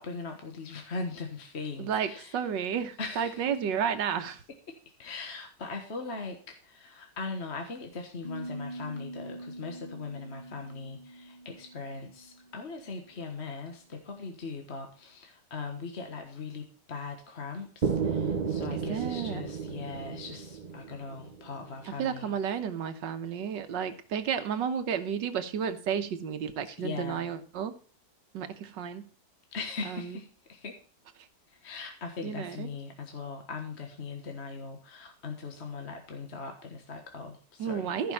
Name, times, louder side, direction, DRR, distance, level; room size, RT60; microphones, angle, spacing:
voice 1, 0.0-2.4 3.0-3.5 5.0-22.3 26.8-27.2 29.5-30.8 31.5-37.9, left 4 dB, 40° left, 4 dB, 1.5 m, -40 dB
voice 2, 1.8-4.4 18.7-19.4 21.9-27.7 28.3-29.1 29.8-30.2 32.2-32.7 37.6-38.1, right 7 dB, 85° right, 9 dB, 1.7 m, -32 dB
sound 1, 8.2-13.1, right 1 dB, 20° right, 3.5 m, -44 dB
sound 2, 17.8-21.7, right 6 dB, 60° right, 0.4 m, -32 dB
14.5 x 5.7 x 5.6 m, 0.40 s
omnidirectional pair, 1.9 m